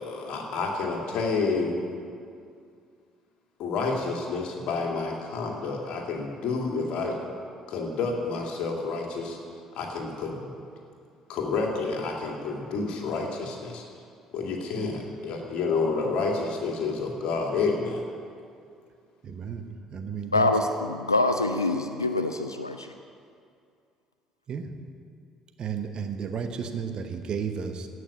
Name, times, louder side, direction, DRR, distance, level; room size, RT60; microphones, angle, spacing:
voice 1, 0.0-1.8 3.6-7.2 7.7-9.4 9.7-10.5 11.3-13.8 14.3-18.0, left 4 dB, 55° left, 0 dB, 2.4 m, -29 dB
voice 2, 19.2-20.5 24.5-24.7 25.6-27.9, right 6 dB, 45° right, 7 dB, 1.1 m, -33 dB
voice 3, 20.3-22.9, left 2 dB, 85° left, 7 dB, 0.4 m, -25 dB
16.0 x 6.3 x 9.1 m, 2.3 s
figure-of-eight pair, 50°, 2 cm